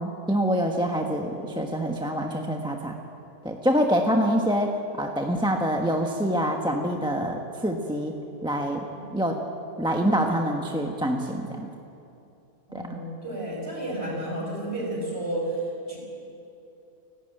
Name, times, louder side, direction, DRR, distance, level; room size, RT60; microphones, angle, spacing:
voice 1, 0.0-2.9 3.4-8.1 8.4-8.8 9.1-9.4 9.8-11.7 12.7-13.0, equal, 5° right, 2 dB, 1.1 m, -26 dB
voice 2, 1.4-2.0 8.9-9.2 12.7-15.5 15.9-16.0, right 1 dB, 35° right, -1 dB, 6.3 m, -33 dB
29.5 x 12.5 x 9.1 m, 2.7 s
omnidirectional pair, 1.8 m